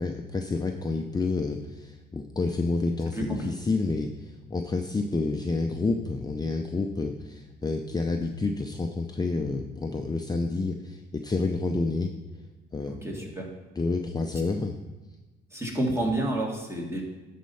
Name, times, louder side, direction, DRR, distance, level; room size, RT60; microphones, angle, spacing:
voice 1, 0.0-12.1 12.7-12.9 13.8-14.8, left 3 dB, 20° left, 4 dB, 0.5 m, -29 dB
voice 2, 3.1-3.5 12.9-13.5 15.5-17.0, right 1 dB, 15° right, 0 dB, 2.0 m, -29 dB
10.0 x 4.3 x 5.5 m, 1.2 s
cardioid pair, 90°, 20 cm